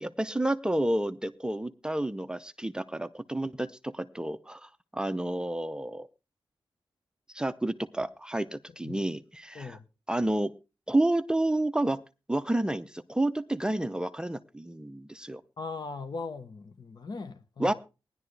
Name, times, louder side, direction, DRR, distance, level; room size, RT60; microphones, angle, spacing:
voice 1, 0.0-6.1 7.3-9.8 10.1-10.5 10.9-12.0 12.3-15.4 17.6-17.7, right 1 dB, 10° right, 0.6 m, -30 dB
voice 2, 15.6-17.7, left 4 dB, 50° left, 1.1 m, -39 dB
18.5 x 11.0 x 3.3 m
wide cardioid pair, 140°, 9 cm